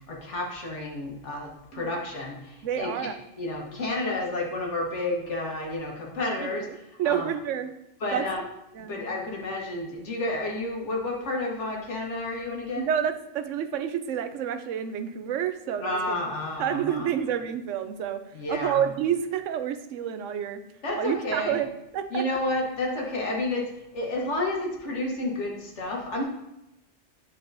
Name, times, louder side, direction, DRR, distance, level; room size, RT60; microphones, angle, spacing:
voice 1, 0.1-3.1 3.4-6.6 7.0-7.2 8.0-8.4 8.9-12.9 15.8-17.1 18.3-18.8 20.8-21.6 22.1-26.2, left 2 dB, 70° left, -1 dB, 1.6 m, -30 dB
voice 2, 2.6-3.1 3.4-3.7 6.3-7.7 8.1-8.3 8.7-9.0 12.8-16.2 16.6-20.6 20.9-22.4, right 9 dB, 90° right, 9 dB, 0.9 m, -29 dB
9.3 x 4.5 x 2.6 m, 0.88 s
omnidirectional pair, 1.2 m